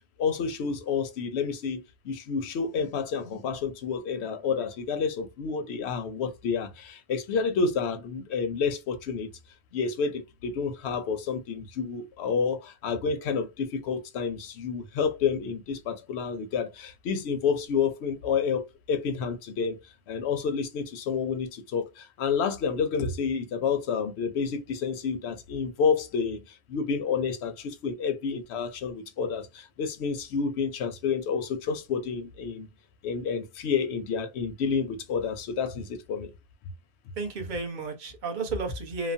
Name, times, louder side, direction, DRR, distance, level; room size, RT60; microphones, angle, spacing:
voice 1, 0.2-9.3 9.7-19.8 20.1-32.7 33.0-36.3, left 6 dB, 85° left, 0.9 m, -29 dB
voice 2, 37.2-39.1, right 3 dB, 50° right, 0.9 m, -32 dB
3.0 x 2.0 x 2.6 m
omnidirectional pair, 1.1 m